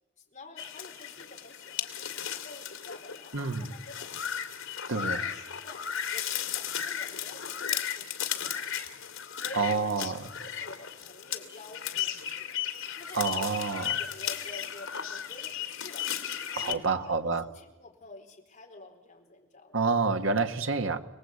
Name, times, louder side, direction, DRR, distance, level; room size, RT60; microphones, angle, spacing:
voice 1, 0.2-4.3 4.9-9.0 9.4-9.9 10.4-12.4 12.9-16.1 16.6-19.8, left 2 dB, 35° left, 1 dB, 4.5 m, -49 dB
sound 1, 0.6-16.8, left 9 dB, 85° left, 2.5 m, -35 dB
voice 2, 3.3-3.7 4.9-5.2 9.5-10.2 13.1-14.0 16.5-17.4 19.7-21.0, right 4 dB, 75° right, 7 dB, 1.5 m, -28 dB
29.0 x 19.5 x 8.5 m, 1.1 s
head